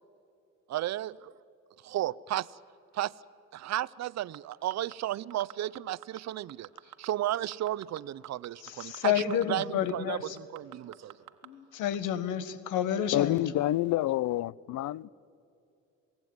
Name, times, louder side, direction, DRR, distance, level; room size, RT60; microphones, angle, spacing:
voice 1, 0.7-1.1 1.8-2.6 2.9-3.1 3.5-6.7 7.0-11.1, right 13 dB, 60° right, 0.6 m, -33 dB
sound 1, 4.2-4.9 5.3-6.2 6.5-7.1 7.3-9.6 9.9-10.0 10.4-11.5 11.9-12.0, right 14 dB, 85° right, 1.3 m, -46 dB
voice 2, 8.6-10.4 11.4-13.4, left 10 dB, 90° left, 1.4 m, -30 dB
voice 3, 13.1-15.1, left 14 dB, 70° left, 0.5 m, -28 dB
27.5 x 18.5 x 9.5 m
cardioid pair, 90°, 30 cm